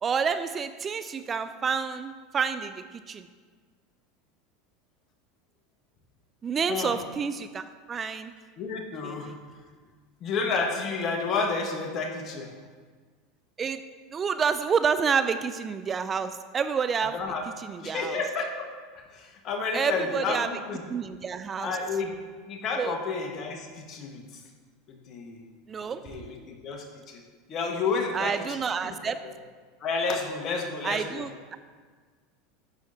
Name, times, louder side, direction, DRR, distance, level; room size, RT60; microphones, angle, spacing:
voice 1, 0.0-3.3 6.4-8.3 9.0-9.3 13.6-13.8 14.1-17.2 17.6-18.2 19.7-20.5 20.9-21.8 22.8-23.0 25.7-26.0 28.1-29.2 30.8-31.6, right 6 dB, 30° right, 11 dB, 0.4 m, -29 dB
voice 2, 6.7-7.0 8.6-9.3 10.2-12.5 17.0-17.4 17.8-18.7 19.1-20.9 21.6-22.1 22.5-24.4 24.9-25.4 26.0-27.2 27.5-28.3 28.8-29.3 29.8-31.2, left 4 dB, 45° left, 3 dB, 1.3 m, -31 dB
11.0 x 6.4 x 2.7 m, 1.5 s
hypercardioid pair, 90°, 0 cm